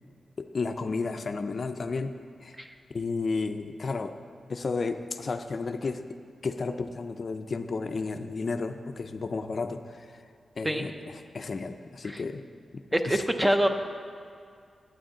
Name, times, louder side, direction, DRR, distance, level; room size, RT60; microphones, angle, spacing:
voice 1, 0.4-2.1 2.4-2.6 2.9-4.1 4.5-6.0 6.4-10.2 10.6-12.4 12.7-13.2, left 4 dB, 45° left, 8 dB, 0.4 m, -32 dB
voice 2, 12.9-13.7, right 1 dB, 10° right, 6 dB, 0.5 m, -25 dB
11.5 x 8.7 x 3.8 m, 2.3 s
wide cardioid pair, 125°, 0 cm